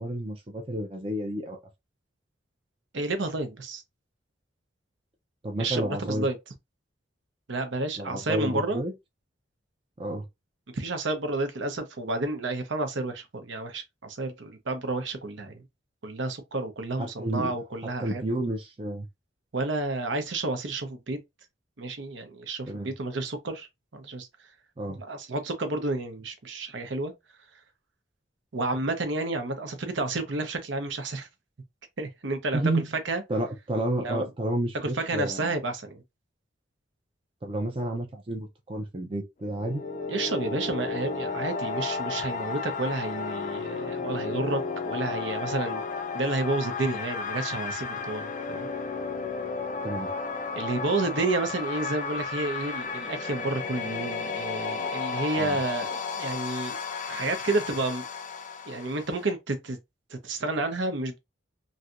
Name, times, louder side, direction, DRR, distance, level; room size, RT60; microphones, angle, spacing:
voice 1, 0.0-1.6 5.4-6.3 8.0-8.9 10.0-10.2 17.0-17.5 18.0-19.1 22.7-22.9 24.8-25.0 32.5-32.9 33.3-35.5 37.4-39.8 49.8-50.1 55.4-55.6, right 1 dB, 25° right, 0.5 m, -30 dB
voice 2, 2.9-3.8 5.6-6.4 7.5-8.8 10.7-15.6 16.0-18.2 19.5-21.2 21.8-23.7 23.9-24.3 25.0-27.1 28.5-31.3 32.0-33.2 34.0-34.3 34.8-36.0 40.1-45.8 46.1-48.7 50.6-56.8 57.1-58.0 58.7-59.8 60.1-61.2, right 2 dB, 70° right, 0.8 m, -30 dB
sound 1, 39.4-59.3, left 4 dB, 40° left, 0.4 m, -33 dB
3.1 x 2.7 x 2.5 m
head